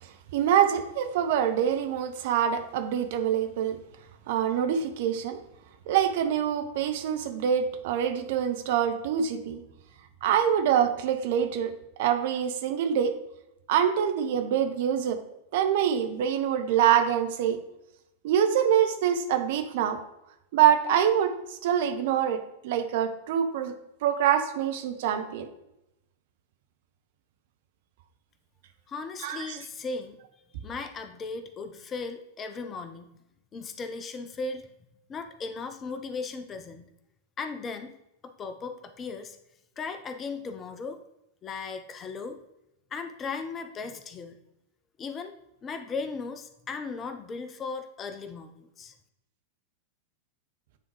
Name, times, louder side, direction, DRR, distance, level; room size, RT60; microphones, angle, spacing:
voice 1, 0.0-3.8 4.3-5.4 5.9-9.6 10.2-11.7 12.0-13.2 13.7-15.2 15.5-17.6 18.2-20.0 20.5-23.7 24.0-25.5 29.2-29.6, right 9 dB, 50° right, 7 dB, 0.7 m, -25 dB
voice 2, 28.9-30.2 30.6-33.2 33.5-34.7 35.1-36.9 37.4-38.0 38.2-39.4 39.8-41.0 41.4-42.4 42.9-44.4 45.0-45.3 45.6-48.9, left 4 dB, 25° left, 9 dB, 0.5 m, -37 dB
9.4 x 3.6 x 3.1 m, 0.86 s
figure-of-eight pair, 90°, 0 cm